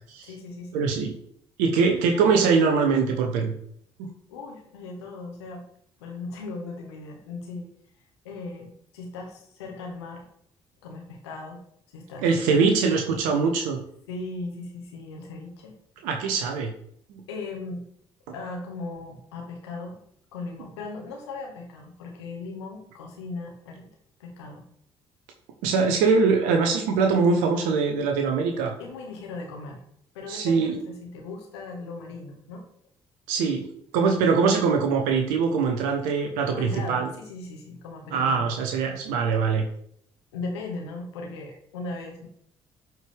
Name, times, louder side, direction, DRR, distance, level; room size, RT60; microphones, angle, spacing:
voice 1, 0.2-0.9 1.8-2.3 4.3-5.6 6.0-7.7 8.2-10.3 10.8-11.6 11.9-12.7 14.1-15.8 17.3-17.8 18.3-20.0 20.3-23.9 24.2-24.6 28.8-29.8 30.1-32.6 36.5-38.5 40.3-42.3, left 3 dB, 80° left, 1 dB, 1.7 m, -38 dB
voice 2, 0.7-1.2 1.6-3.5 4.0-4.1 12.2-13.8 16.0-16.7 25.6-28.7 30.3-30.8 33.3-33.7 33.9-37.1 38.1-39.6, right 5 dB, 70° right, 3 dB, 1.1 m, -22 dB
12.0 x 4.8 x 3.5 m, 0.68 s
hypercardioid pair, 50°, 14 cm